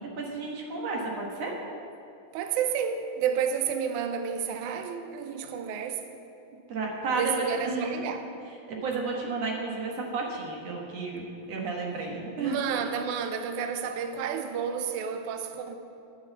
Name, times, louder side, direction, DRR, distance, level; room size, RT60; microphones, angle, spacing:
voice 1, 0.2-1.5 6.7-8.1 8.7-11.2 11.5-12.6, right 3 dB, 60° right, -1 dB, 2.2 m, -32 dB
voice 2, 2.3-6.1 7.1-8.2 12.4-15.8, right 7 dB, 75° right, 6 dB, 2.1 m, -30 dB
9.4 x 8.4 x 7.2 m, 2.8 s
omnidirectional pair, 3.7 m